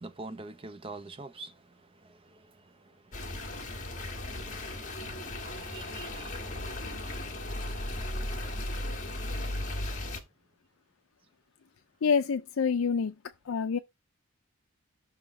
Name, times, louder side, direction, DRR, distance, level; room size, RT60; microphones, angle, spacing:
voice 1, 0.0-8.8, right 3 dB, 25° right, 0.5 m, -49 dB
sound 1, 3.1-10.2, left 1 dB, 35° left, 1.4 m, -36 dB
voice 2, 12.0-13.2 13.5-13.8, left 6 dB, 70° left, 0.4 m, -27 dB
6.1 x 3.6 x 5.4 m
head